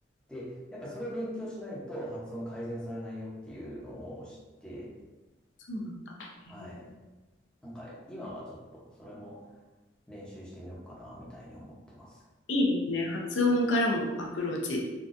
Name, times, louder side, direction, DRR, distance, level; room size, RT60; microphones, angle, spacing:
voice 1, 0.3-4.9 6.5-6.9 7.6-9.4 10.1-12.2, equal, 5° left, -6 dB, 0.7 m, -41 dB
voice 2, 12.5-14.8, left 1 dB, 90° left, 0 dB, 0.6 m, -28 dB
3.9 x 2.3 x 2.5 m, 1.2 s
head